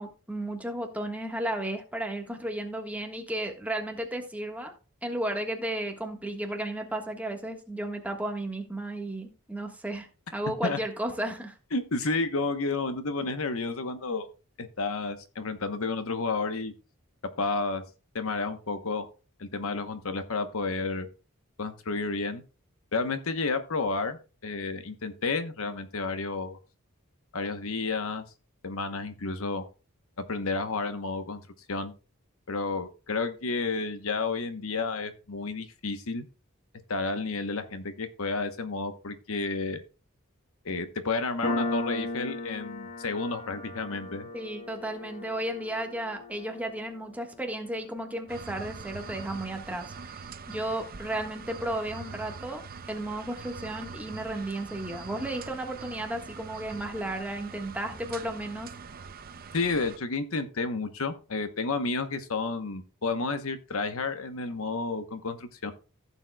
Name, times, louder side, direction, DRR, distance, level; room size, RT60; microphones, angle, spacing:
voice 1, 0.0-4.7 5.0-11.6 44.3-52.6 52.9-58.7, right 1 dB, 5° right, 1.4 m, -34 dB
voice 2, 11.7-14.3 14.6-16.7 17.4-17.8 18.1-19.1 19.4-21.1 21.6-22.4 22.9-26.6 27.3-28.3 28.6-29.6 30.3-31.4 31.7-31.9 32.5-36.3 36.9-39.8 40.6-44.3 59.5-65.7, left 3 dB, 70° left, 1.0 m, -31 dB
Piano, 41.4-48.6, left 2 dB, 40° left, 1.2 m, -37 dB
sound 1, 48.3-60.0, right 5 dB, 45° right, 0.6 m, -43 dB
15.0 x 7.2 x 2.3 m
head